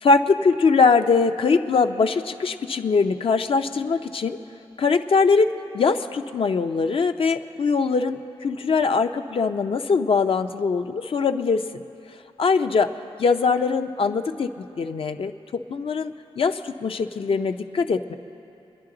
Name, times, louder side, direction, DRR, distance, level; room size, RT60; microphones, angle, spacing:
voice 1, 0.0-4.4 4.8-11.6 12.4-12.9 13.2-15.3 15.7-18.2, left 4 dB, 65° left, 7 dB, 0.6 m, -22 dB
25.5 x 10.5 x 3.9 m, 2.8 s
wide cardioid pair, 115°, 10 cm